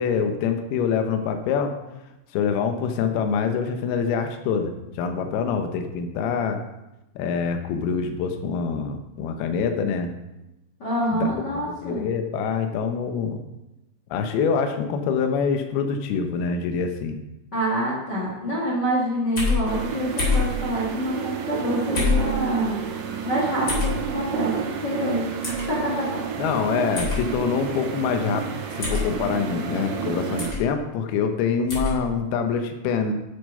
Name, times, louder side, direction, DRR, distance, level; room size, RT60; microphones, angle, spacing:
voice 1, 0.0-1.8 2.3-6.6 7.2-10.1 11.1-11.3 11.8-13.4 14.1-17.2 26.4-28.5 28.7-33.1, left 6 dB, 85° left, 5 dB, 2.2 m, -25 dB
voice 2, 10.8-12.1 17.5-22.8 23.2-26.2, equal, 60° left, -4 dB, 1.1 m, -26 dB
sound 1, 19.4-19.6 20.2-20.5 21.9-22.3 23.7-23.9 25.4-25.6 26.9-27.2 28.8-29.1 30.4-30.6 31.7-31.9, left 5 dB, 25° left, 3.9 m, -24 dB
sound 2, 19.7-30.5, right 7 dB, 75° right, 3.6 m, -30 dB
10.0 x 7.1 x 5.5 m, 0.95 s
omnidirectional pair, 5.8 m